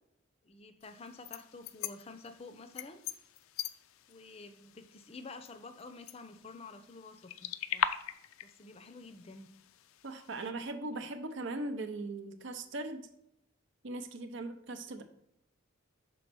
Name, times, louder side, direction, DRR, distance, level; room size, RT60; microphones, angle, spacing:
voice 1, 0.4-3.0 4.1-7.9 8.4-9.5, left 3 dB, 30° left, 9 dB, 0.5 m, -49 dB
sound 1, 0.8-10.5, left 9 dB, 80° left, 0.4 m, -42 dB
voice 2, 10.0-13.1 13.8-15.0, right 2 dB, 60° right, 7 dB, 0.7 m, -39 dB
5.4 x 4.1 x 6.1 m, 0.81 s
head